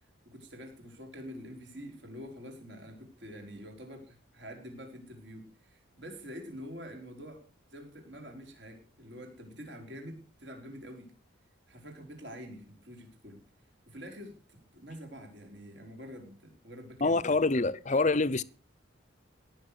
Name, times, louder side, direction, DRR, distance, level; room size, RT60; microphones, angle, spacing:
voice 1, 0.2-7.4 7.7-11.1 11.7-13.4 13.8-17.4, equal, 60° right, 5.0 m, -46 dB
voice 2, 17.0-18.4, left 3 dB, 35° left, 0.6 m, -26 dB
17.5 x 7.3 x 6.8 m
head